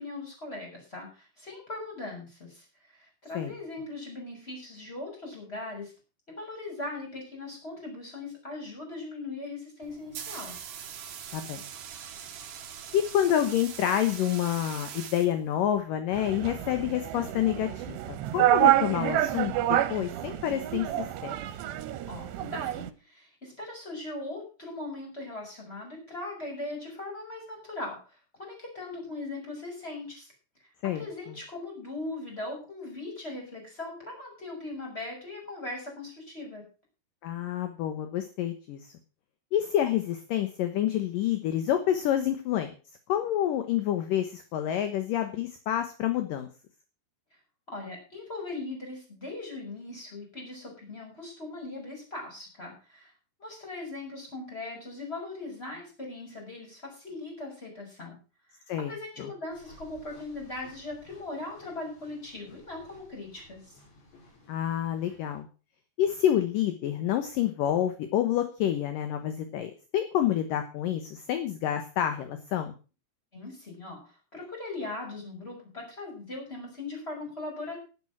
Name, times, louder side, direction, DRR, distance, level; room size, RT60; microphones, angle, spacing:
voice 1, 0.0-5.9 6.3-10.5 22.1-30.3 30.9-36.7 47.7-53.1 53.4-58.2 58.9-63.7 73.3-77.8, left 2 dB, 15° left, 0 dB, 6.8 m, -39 dB
sound 1, 9.8-15.8, right 8 dB, 60° right, 2.9 m, -42 dB
voice 2, 11.3-11.6 12.9-20.9 21.2-21.3 30.8-31.0 37.2-38.9 39.5-42.7 43.1-46.5 58.7-58.9 59.2-59.3 64.5-65.5 66.0-72.7, left 11 dB, 65° left, 8 dB, 2.4 m, -28 dB
sound 2, 16.1-22.9, right 14 dB, 85° right, 3.1 m, -28 dB
sound 3, 59.5-65.4, left 2 dB, 85° left, 8.8 m, -56 dB
12.0 x 11.0 x 6.1 m, 0.35 s
omnidirectional pair, 4.9 m